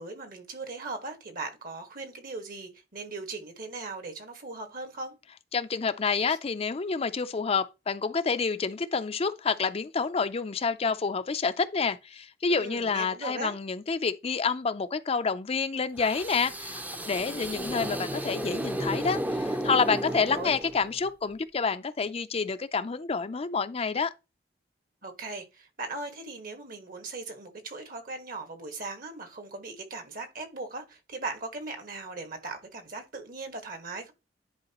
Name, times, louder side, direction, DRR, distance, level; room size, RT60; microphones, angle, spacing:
voice 1, 0.0-5.1 12.5-13.5 20.0-20.6 25.0-34.1, right 3 dB, 55° right, 1.6 m, -39 dB
voice 2, 5.5-24.1, left 5 dB, 35° left, 0.5 m, -28 dB
sound 1, 16.0-21.1, right 1 dB, 10° right, 0.6 m, -33 dB
10.5 x 4.7 x 3.0 m
head